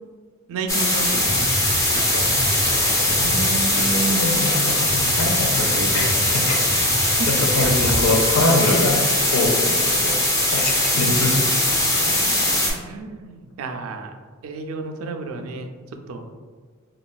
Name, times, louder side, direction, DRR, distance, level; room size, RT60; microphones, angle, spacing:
voice 1, 0.5-1.5 7.0-7.3 10.9-12.4 12.6-14.1 14.4-16.3, right 3 dB, 80° right, 5 dB, 0.3 m, -33 dB
sound 1, 0.7-12.7, left 1 dB, 15° left, 0.4 m, -20 dB
Drum kit, 0.8-8.1, right 1 dB, 45° left, 0.9 m, -31 dB
voice 2, 2.1-7.0 7.2-9.0 9.3-11.6, left 2 dB, 90° left, 1 dB, 0.6 m, -24 dB
3.5 x 2.3 x 2.2 m, 1.5 s
head